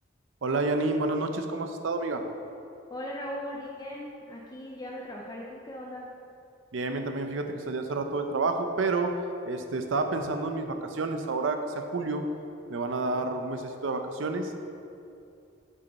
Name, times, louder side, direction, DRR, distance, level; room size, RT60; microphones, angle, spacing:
voice 1, 0.4-2.2 6.7-9.1 9.4-12.2 12.7-14.5, right 3 dB, 85° right, 6 dB, 0.6 m, -29 dB
voice 2, 2.9-6.1, equal, 20° left, -2 dB, 0.6 m, -38 dB
8.4 x 5.2 x 4.2 m, 2.6 s
head